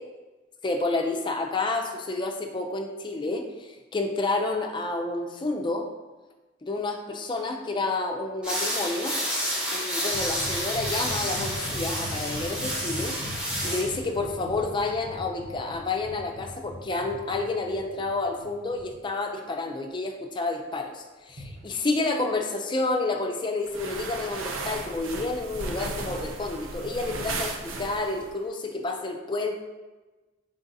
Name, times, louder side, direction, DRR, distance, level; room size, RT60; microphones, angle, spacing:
voice 1, 0.6-5.9 6.6-9.2 9.7-29.5, left 3 dB, 25° left, 3 dB, 0.4 m, -30 dB
sound 1, 8.4-13.9, equal, 5° right, 1.2 m, -30 dB
sound 2, 10.1-18.9 21.3-21.7, equal, 35° right, 0.9 m, -39 dB
sound 3, 23.6-28.3, right 3 dB, 85° right, 0.5 m, -35 dB
4.6 x 3.7 x 2.7 m, 1.2 s
head